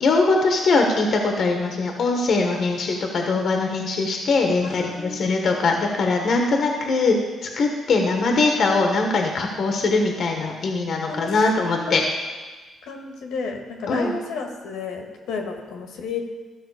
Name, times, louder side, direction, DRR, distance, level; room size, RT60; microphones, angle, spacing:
voice 1, 0.0-12.0 13.9-14.1, left 3 dB, 60° left, 2 dB, 1.2 m, -21 dB
voice 2, 4.6-5.2 11.1-11.3 11.6-12.0 12.8-16.2, left 4 dB, 85° left, 2 dB, 1.6 m, -32 dB
13.5 x 5.9 x 4.9 m, 1.3 s
cardioid pair, 90°, 0 cm